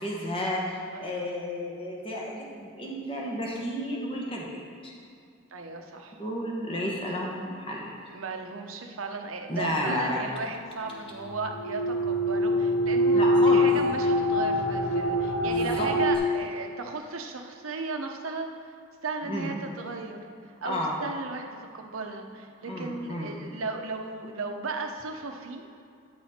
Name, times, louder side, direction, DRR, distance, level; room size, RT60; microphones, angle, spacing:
voice 1, 0.0-4.9 6.2-7.9 9.5-10.2 13.1-13.7 15.4-15.9 19.2-19.5 20.6-20.9 22.6-23.3, equal, 25° left, -2 dB, 1.1 m, -32 dB
voice 2, 0.9-1.3 5.5-6.2 8.1-18.5 19.0-25.7, right 3 dB, 90° right, 4 dB, 0.8 m, -36 dB
sound 1, 11.4-16.2, left 1 dB, 90° left, 0.6 m, -24 dB
9.4 x 6.0 x 4.3 m, 2.5 s
head